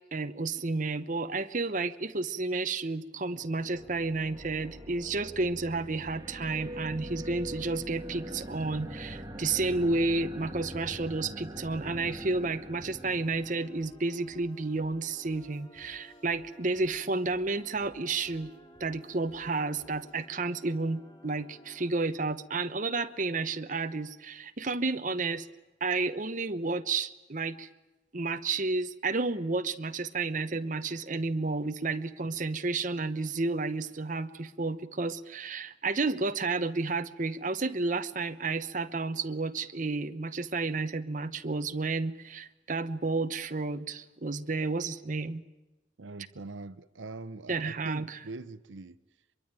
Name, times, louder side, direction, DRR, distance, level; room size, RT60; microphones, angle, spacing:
voice 1, 0.1-18.5 18.8-25.5 25.8-27.7 28.1-45.4 47.5-48.2, right 3 dB, 45° right, 1.0 m, -31 dB
sound 1, 3.3-13.8, equal, 20° right, 1.8 m, -43 dB
sound 2, 12.3-20.3, left 1 dB, 80° left, 3.2 m, -62 dB
sound 3, 13.2-21.9, equal, 25° left, 2.4 m, -55 dB
voice 2, 46.0-49.0, right 3 dB, 85° right, 0.8 m, -42 dB
24.5 x 23.0 x 9.0 m
head